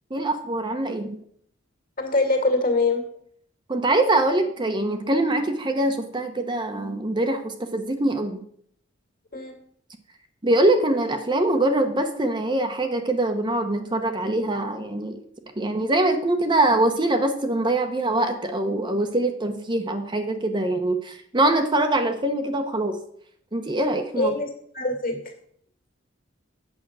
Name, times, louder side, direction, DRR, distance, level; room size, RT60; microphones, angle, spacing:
voice 1, 0.1-1.1 3.7-8.4 10.4-15.2 15.6-23.0 23.5-24.4, right 2 dB, 25° right, 5 dB, 0.9 m, -23 dB
voice 2, 2.0-3.0 9.3-9.5 24.2-24.5 24.7-25.3, left 2 dB, 45° left, 5 dB, 2.2 m, -23 dB
9.0 x 7.2 x 6.1 m, 0.65 s
head